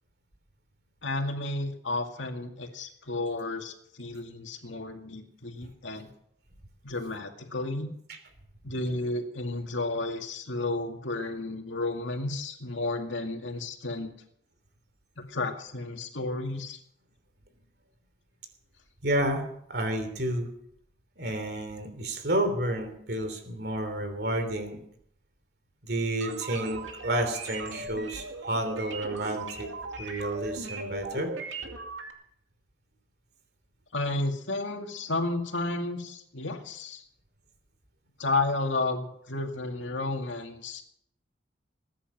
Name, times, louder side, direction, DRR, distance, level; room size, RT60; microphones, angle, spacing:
voice 1, 1.0-6.1 6.8-7.9 8.6-14.1 15.2-16.8 33.9-37.0 38.2-40.8, left 2 dB, 90° left, 4 dB, 2.2 m, -32 dB
voice 2, 19.0-20.5 21.2-24.8 25.8-29.7 30.0-31.3, right 1 dB, 55° right, 8 dB, 3.2 m, -30 dB
sound 1, 26.2-32.1, right 3 dB, 85° right, 2.3 m, -39 dB
20.5 x 10.0 x 6.1 m, 0.71 s
head